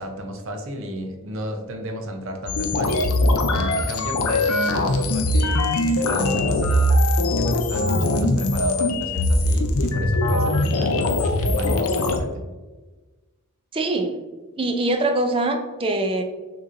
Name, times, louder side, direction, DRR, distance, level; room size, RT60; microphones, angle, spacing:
voice 1, 0.0-3.2 3.7-6.9 7.3-12.4, equal, 60° right, 4 dB, 0.7 m, -33 dB
sound 1, 2.5-12.2, left 1 dB, 80° left, 0.6 m, -21 dB
voice 2, 13.7-14.2 14.6-16.2, right 2 dB, 25° right, 5 dB, 0.4 m, -23 dB
6.4 x 2.9 x 2.6 m, 1.2 s
head